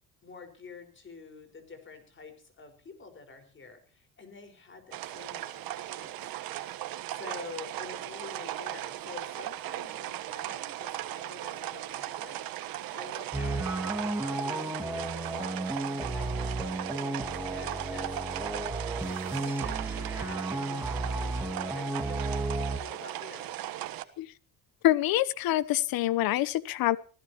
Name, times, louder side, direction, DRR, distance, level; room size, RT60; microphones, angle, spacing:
voice 1, 0.2-6.3 7.1-12.6 12.9-15.8 16.0-18.2 19.0-23.5, left 4 dB, 35° left, 7 dB, 5.2 m, -48 dB
sound 1, 4.9-24.0, right 14 dB, 90° right, 1.4 m, -38 dB
sound 2, 13.3-22.8, right 2 dB, 5° right, 2.2 m, -33 dB
voice 2, 24.8-27.0, left 14 dB, 90° left, 17 dB, 1.0 m, -26 dB
25.0 x 16.5 x 3.1 m, 0.37 s
cardioid pair, 130°, 34 cm